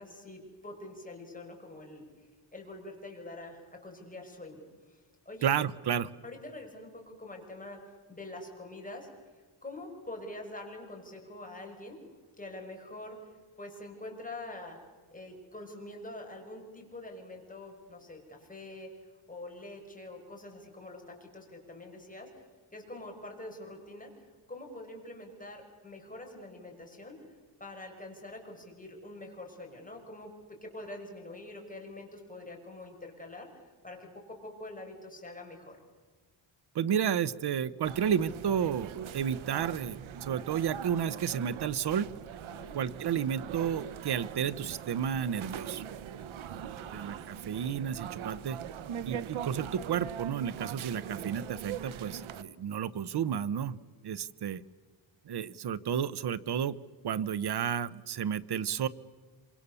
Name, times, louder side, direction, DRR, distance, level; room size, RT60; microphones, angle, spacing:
voice 1, 0.0-2.1 2.5-4.6 4.9-5.0 5.2-5.5 6.2-7.8 8.1-9.3 9.6-12.0 12.4-13.2 13.6-14.8 15.1-22.3 22.7-24.1 24.5-27.2 27.6-35.8 42.5-42.8 46.5-47.0, left 2 dB, 15° left, 2 dB, 6.1 m, -45 dB
voice 2, 5.4-6.1 36.7-42.1 42.7-45.8 46.9-48.6 49.0-53.8 54.0-54.6 55.3-56.7 57.0-58.9, right 8 dB, 50° right, 17 dB, 1.0 m, -31 dB
sound 1, 37.8-52.4, right 9 dB, 75° right, 1.2 m, -42 dB
27.0 x 25.0 x 7.0 m, 1.4 s
cardioid pair, 110°, 49 cm